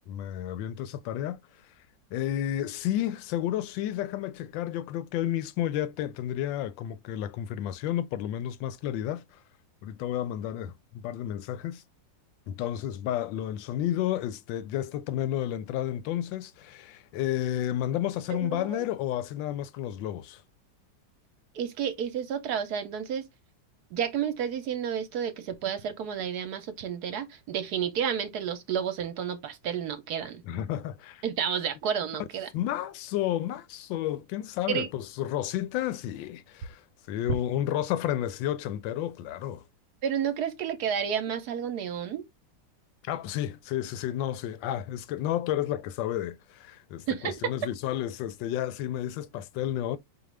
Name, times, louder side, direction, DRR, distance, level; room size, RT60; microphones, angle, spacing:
voice 1, 0.1-1.4 2.1-9.2 9.8-11.8 12.5-20.4 30.4-31.2 32.5-36.8 37.1-39.6 43.0-50.0, left 12 dB, 85° left, 1.3 m, -31 dB
voice 2, 18.3-18.8 21.5-23.2 23.9-30.4 31.2-32.5 34.7-34.9 40.0-42.2 47.1-47.5, right 8 dB, 65° right, 1.1 m, -31 dB
5.0 x 2.4 x 3.1 m
omnidirectional pair, 2.0 m